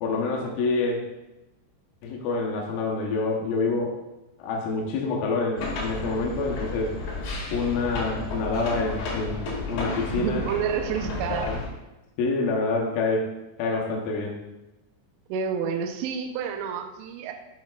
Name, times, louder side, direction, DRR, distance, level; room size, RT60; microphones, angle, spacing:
voice 1, 0.0-1.0 2.0-4.0 4.4-6.9 7.5-10.4 11.3-11.6 12.2-14.4, left 3 dB, 80° left, -1 dB, 2.0 m, -27 dB
sound 1, 5.6-11.7, left 3 dB, 65° left, 2.3 m, -32 dB
voice 2, 10.2-11.5 15.3-17.3, right 7 dB, 80° right, 3 dB, 2.7 m, -29 dB
9.5 x 5.7 x 2.2 m, 0.99 s
omnidirectional pair, 5.2 m